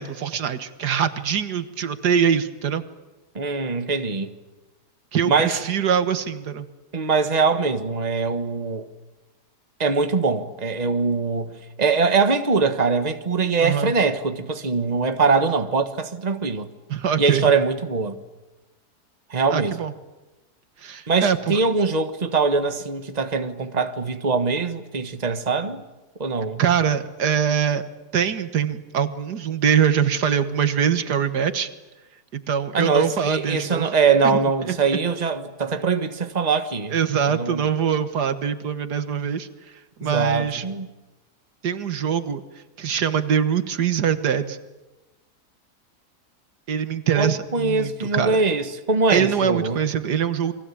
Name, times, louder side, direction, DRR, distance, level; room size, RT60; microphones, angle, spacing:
voice 1, 0.0-2.8 5.1-6.7 13.6-13.9 16.9-17.5 19.5-19.9 20.8-21.6 26.6-27.8 28.1-31.7 32.3-33.9 34.2-35.0 36.9-39.5 40.0-40.6 41.6-42.4 42.8-44.6 46.7-48.4 49.1-50.5, right 8 dB, 80° right, 1.9 m, -23 dB
voice 2, 3.3-4.4 5.2-5.6 6.9-8.8 9.8-16.7 17.2-18.2 19.3-19.8 21.1-25.8 26.2-26.6 32.7-37.0 37.2-37.6 40.0-40.9 47.1-49.8, right 4 dB, 25° right, 1.5 m, -22 dB
29.0 x 22.5 x 8.6 m
omnidirectional pair, 1.7 m